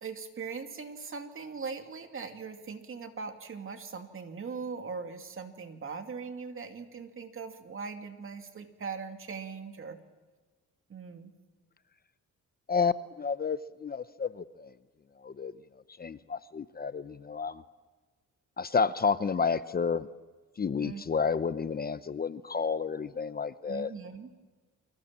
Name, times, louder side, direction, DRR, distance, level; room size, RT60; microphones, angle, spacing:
voice 1, 0.0-10.0 10.9-11.3 20.8-21.0 23.7-24.5, right 5 dB, 45° right, 6 dB, 2.5 m, -40 dB
voice 2, 12.7-14.7 15.2-15.5 16.0-17.6 18.6-20.1 20.6-23.9, left 5 dB, 30° left, 13 dB, 0.8 m, -30 dB
29.5 x 24.5 x 7.4 m, 1.3 s
cardioid pair, 130°, 30 cm